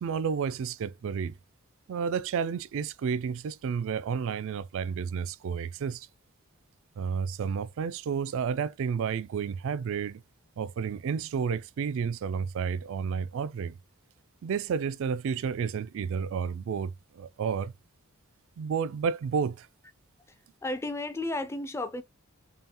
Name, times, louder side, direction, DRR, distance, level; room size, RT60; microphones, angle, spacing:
voice 1, 0.0-1.4 1.9-6.1 7.0-10.2 10.6-13.7 14.4-17.7 18.6-19.7, right 6 dB, 65° right, 0.3 m, -31 dB
voice 2, 20.6-22.0, left 2 dB, 10° left, 0.4 m, -33 dB
5.4 x 2.3 x 2.8 m
head